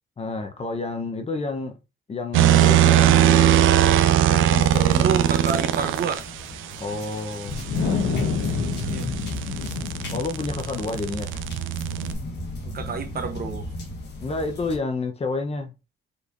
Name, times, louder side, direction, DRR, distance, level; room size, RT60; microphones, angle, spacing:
voice 1, 0.2-1.8 2.1-3.2 4.3-5.1 6.8-7.6 10.1-11.3 14.2-15.7, left 3 dB, 30° left, 0.7 m, -29 dB
sound 1, 2.3-6.2 8.5-12.1, right 11 dB, 85° right, 0.5 m, -19 dB
sound 2, 4.6-14.8, left 1 dB, 60° left, 1.4 m, -38 dB
voice 2, 4.9-6.3 8.8-9.1 12.6-13.7, right 5 dB, 50° right, 0.9 m, -29 dB
Wind, 7.5-14.0, left 4 dB, 80° left, 1.1 m, -29 dB
5.1 x 3.2 x 2.5 m
cardioid pair, 90°, 20 cm